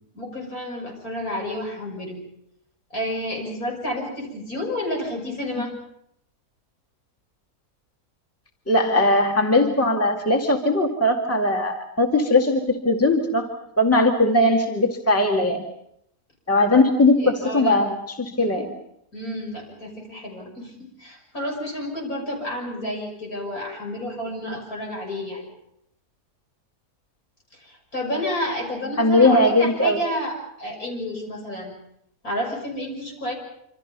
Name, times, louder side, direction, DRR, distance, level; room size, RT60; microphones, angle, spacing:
voice 1, 0.1-2.2 2.9-5.7 16.7-16.9 17.2-17.8 18.4-18.5 19.1-25.5 27.5-31.7 32.2-33.3, left 1 dB, 65° left, 1 dB, 6.8 m, -30 dB
voice 2, 8.7-13.5 13.8-15.6 16.5-18.7 24.4-24.6 29.0-30.0, left 2 dB, 10° left, 2 dB, 2.1 m, -19 dB
27.0 x 26.0 x 5.4 m, 0.75 s
omnidirectional pair, 1.7 m